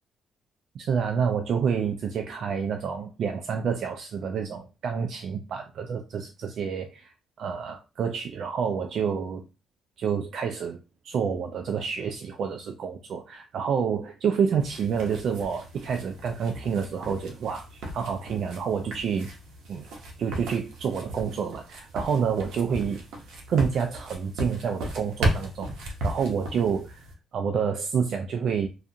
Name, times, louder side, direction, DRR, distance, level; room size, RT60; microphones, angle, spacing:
voice 1, 0.7-9.4 10.0-19.3 19.7-19.9 20.2-23.0 23.5-28.7, right 6 dB, 65° right, 0.3 m, -28 dB
sound 1, 14.6-27.1, right 1 dB, 85° right, 0.8 m, -35 dB
2.4 x 2.3 x 2.7 m
cardioid pair, 90°, 0 cm